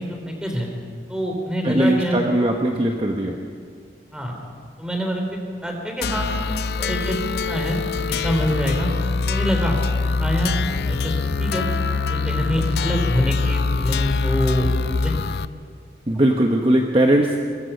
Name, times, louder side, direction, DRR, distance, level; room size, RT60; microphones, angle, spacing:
voice 1, 0.3-0.7 1.1-2.2 4.1-4.3 4.8-6.3 6.8-7.2 7.4-7.8 8.2-8.9 9.3-10.5 10.9-11.1 11.4-11.7 12.1-14.7 15.0-15.1, equal, 5° right, 2 dB, 3.4 m, -25 dB
voice 2, 1.6-3.4 16.1-17.4, right 1 dB, 30° right, 1 dB, 1.2 m, -19 dB
sound 1, 6.0-15.5, left 4 dB, 65° left, 0.5 m, -24 dB
22.5 x 22.0 x 5.6 m, 2.1 s
head